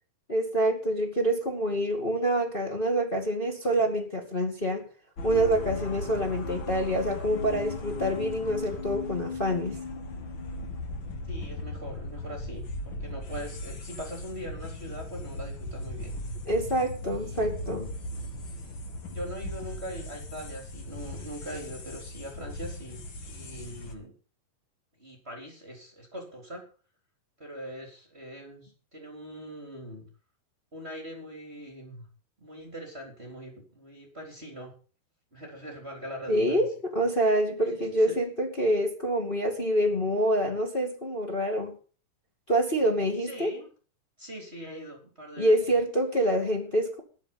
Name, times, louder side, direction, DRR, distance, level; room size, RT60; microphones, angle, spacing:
voice 1, 0.3-4.8 5.2-9.8 16.4-17.9 36.3-41.8 42.5-43.5 45.4-47.0, right 1 dB, 20° left, 0 dB, 1.5 m, -26 dB
sound 1, 5.2-23.9, left 2 dB, 55° left, 1.3 m, -37 dB
voice 2, 11.3-16.1 17.1-17.5 19.1-24.1 25.0-26.6 27.4-30.1 30.7-32.1 32.4-34.7 35.3-36.6 37.6-38.2 43.2-43.7 44.2-45.8, equal, 15° right, 1 dB, 3.4 m, -42 dB
20.0 x 7.4 x 5.7 m, 0.39 s
omnidirectional pair, 4.7 m